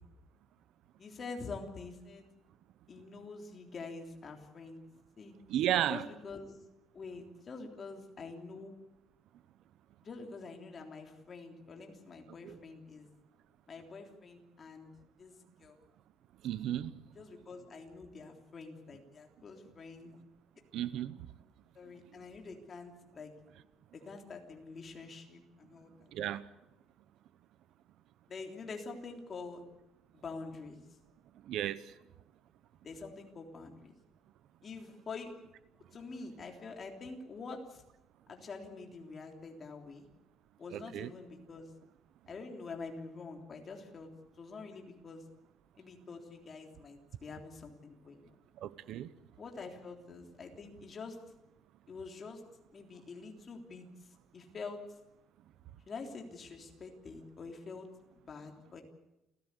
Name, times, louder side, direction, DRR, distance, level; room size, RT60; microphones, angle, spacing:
voice 1, 1.0-2.3 2.9-4.8 5.2-5.4 5.9-6.6 6.9-8.7 10.0-13.1 13.7-14.9 15.2-15.8 17.2-20.1 21.7-23.3 23.9-26.1 28.3-29.6 30.1-30.8 32.8-33.9 34.6-35.3 35.9-37.8 38.3-40.1 40.6-41.7 42.3-44.1 44.4-45.2 45.8-48.3 49.4-51.2 51.9-52.4 52.7-55.0 55.9-57.9 58.3-58.8, left 4 dB, 30° left, 3.5 m, -46 dB
voice 2, 5.5-6.0 12.4-12.6 16.4-16.9 20.7-21.2 26.1-26.4 31.5-31.8 40.7-41.1 48.6-49.1, right 12 dB, 60° right, 0.9 m, -33 dB
28.5 x 16.0 x 8.3 m
cardioid pair, 165°, 0 cm